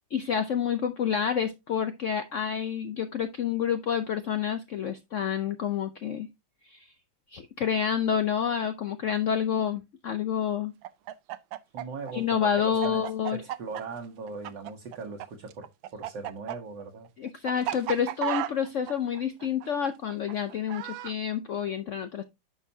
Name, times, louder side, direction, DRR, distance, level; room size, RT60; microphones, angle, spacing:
voice 1, 0.1-6.3 6.6-6.9 7.3-10.7 12.1-13.4 17.2-22.2, left 8 dB, 75° left, 0.6 m, -28 dB
Chicken rooster, 10.8-15.3 15.5-21.1, right 13 dB, 85° right, 1.4 m, -34 dB
voice 2, 11.7-13.0 13.3-15.7 15.9-17.1, right 4 dB, 70° right, 1.8 m, -39 dB
10.0 x 6.0 x 2.7 m
omnidirectional pair, 2.1 m